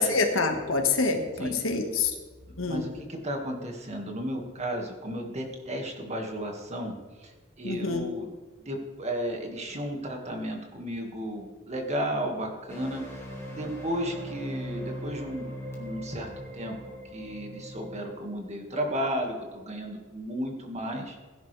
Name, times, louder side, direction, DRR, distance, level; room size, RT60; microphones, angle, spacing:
voice 1, 0.0-2.1 2.6-2.8 7.6-8.1, left 4 dB, 80° left, 4 dB, 1.7 m, -26 dB
voice 2, 2.6-6.9 7.2-8.3 8.6-13.2 13.5-15.5 15.7-16.8 17.1-21.2, equal, 35° right, 2 dB, 1.9 m, -33 dB
sound 1, 12.7-18.0, equal, 15° left, 2.3 m, -40 dB
17.0 x 10.5 x 3.4 m, 1.4 s
head